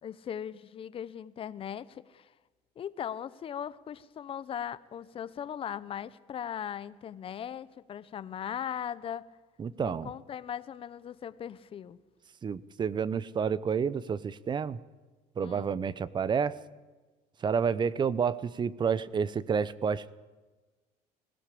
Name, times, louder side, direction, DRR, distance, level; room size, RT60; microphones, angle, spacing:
voice 1, 0.0-2.3 2.8-9.3 9.8-12.0 15.4-15.8, left 9 dB, 35° left, 16 dB, 0.9 m, -39 dB
voice 2, 9.6-10.1 12.4-14.8 15.4-16.6 17.4-20.1, right 6 dB, 30° right, 19 dB, 0.8 m, -29 dB
20.0 x 16.0 x 8.6 m, 1.3 s
cardioid pair, 110°, 15 cm